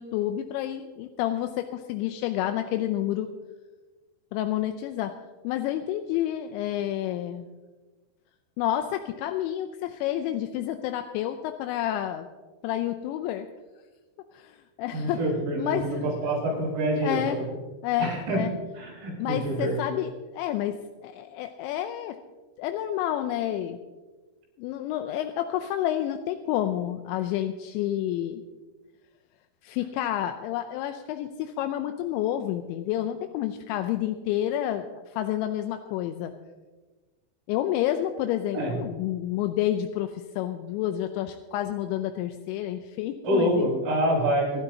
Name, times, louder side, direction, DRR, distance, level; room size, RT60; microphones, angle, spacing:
voice 1, 0.0-3.3 4.3-5.2 5.4-7.5 8.6-12.3 12.6-13.5 14.3-15.2 15.6-16.0 17.0-17.4 17.8-18.5 19.2-22.2 22.6-23.8 24.6-28.4 29.6-36.3 37.5-43.7, left 12 dB, 85° left, 7 dB, 2.8 m, -29 dB
voice 2, 14.9-17.3 18.0-18.4 18.8-19.7 38.5-38.7 43.2-44.6, right 1 dB, 85° right, -4 dB, 8.5 m, -26 dB
25.5 x 11.5 x 2.8 m, 1.3 s
omnidirectional pair, 5.6 m